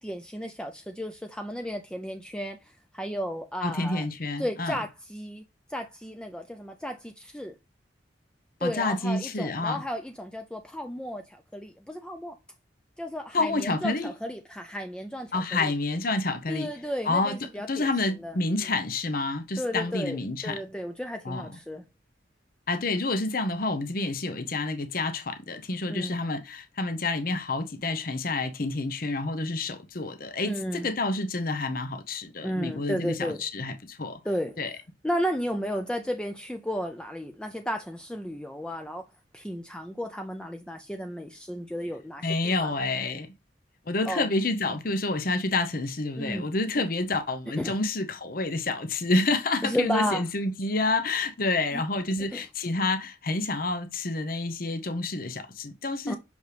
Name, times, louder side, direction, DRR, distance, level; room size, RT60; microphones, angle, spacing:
voice 1, 0.0-4.1 4.4-5.4 5.7-7.6 8.6-12.4 13.0-15.7 16.5-17.9 18.2-18.4 19.6-21.8 25.9-26.2 30.4-30.9 32.4-33.4 34.2-34.6 35.0-39.0 39.3-42.8 44.0-44.3 44.7-44.8 46.2-46.5 47.6-47.8 49.6-50.2 51.7-51.8 52.3-52.5 56.1-56.2, equal, 5° left, 0.5 m, -33 dB
voice 2, 3.6-4.8 8.6-9.8 13.3-14.1 15.3-16.7 17.1-17.3 17.7-20.6 21.2-21.5 22.7-34.2 34.6-34.7 42.2-43.3 43.9-56.2, left 2 dB, 50° left, 0.9 m, -28 dB
6.4 x 5.3 x 3.3 m
head